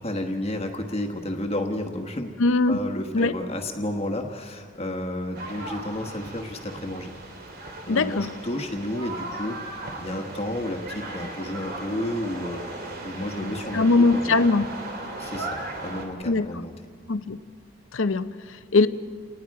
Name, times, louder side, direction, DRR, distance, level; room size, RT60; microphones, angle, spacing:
voice 1, 0.0-2.3 2.7-7.1 7.9-14.4 15.2-16.7, left 1 dB, 30° left, 4 dB, 1.3 m, -32 dB
voice 2, 2.4-2.8 3.1-3.3 7.9-8.3 13.7-14.7 16.2-16.6 17.1-17.4 17.9-18.9, left 3 dB, 65° left, 12 dB, 0.7 m, -21 dB
sound 1, 5.3-16.1, right 2 dB, 45° right, 2.5 m, -37 dB
29.5 x 19.5 x 4.8 m, 2.1 s
head